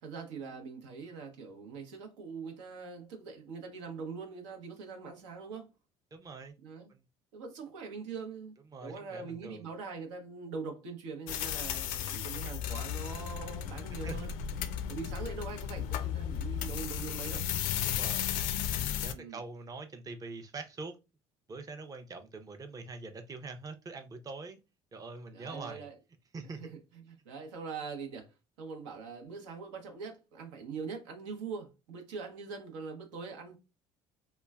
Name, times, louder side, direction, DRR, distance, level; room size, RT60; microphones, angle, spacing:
voice 1, 0.0-5.7 6.6-6.9 7.3-8.5 8.8-14.3 14.9-17.5 19.0-19.4 25.3-26.0 26.6-33.6, right 5 dB, 85° right, 0.8 m, -43 dB
voice 2, 6.1-6.6 6.9-7.0 8.7-9.6 14.0-14.2 17.8-18.3 18.9-21.0 21.5-24.6 24.9-25.9 26.3-26.7, right 3 dB, 25° right, 0.5 m, -44 dB
sound 1, 11.3-19.1, left 9 dB, 70° left, 0.4 m, -34 dB
3.0 x 2.2 x 2.3 m
hypercardioid pair, 70°, 15 cm